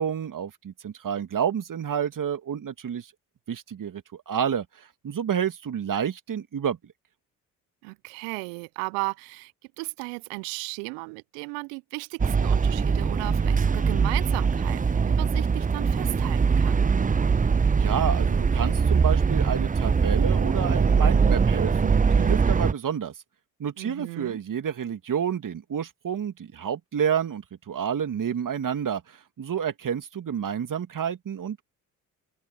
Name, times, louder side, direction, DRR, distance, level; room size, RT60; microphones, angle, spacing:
voice 1, 0.0-3.1 3.5-6.8 17.8-23.1 23.6-29.0 29.4-31.6, right 8 dB, 45° right, 2.6 m, -29 dB
voice 2, 7.8-16.9 23.8-24.4, right 33 dB, 70° right, 0.9 m, -35 dB
sound 1, 12.2-22.7, right 5 dB, 20° right, 0.7 m, -22 dB
hypercardioid pair, 45°, 45 cm